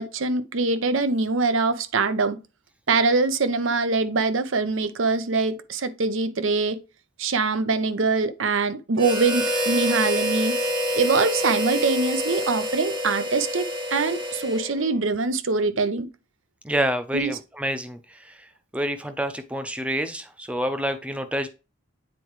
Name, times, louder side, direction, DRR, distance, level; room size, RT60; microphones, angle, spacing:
voice 1, 0.0-2.4 2.9-6.8 7.2-10.5 10.9-16.1 17.1-17.4, right 3 dB, 65° right, 0.7 m, -23 dB
Harmonica, 9.0-15.0, equal, 25° right, 1.2 m, -27 dB
voice 2, 16.6-18.0 18.7-21.5, equal, 5° right, 0.6 m, -27 dB
8.4 x 4.5 x 3.1 m
head